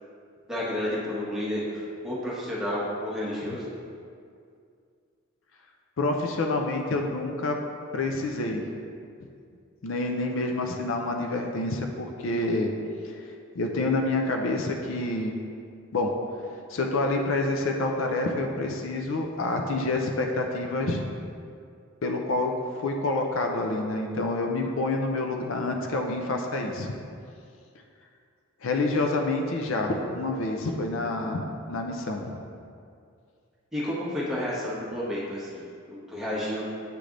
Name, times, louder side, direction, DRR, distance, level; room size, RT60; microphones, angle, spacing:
voice 1, 0.5-3.6 33.7-36.6, left 1 dB, ahead, -8 dB, 1.2 m, -31 dB
voice 2, 6.0-7.6 7.9-8.6 9.8-12.7 13.0-13.2 13.6-15.3 15.9-16.1 16.7-21.1 22.0-22.5 22.8-26.9 28.6-32.4, left 2 dB, 65° left, 2 dB, 0.5 m, -27 dB
8.3 x 3.3 x 3.8 m, 2.3 s
head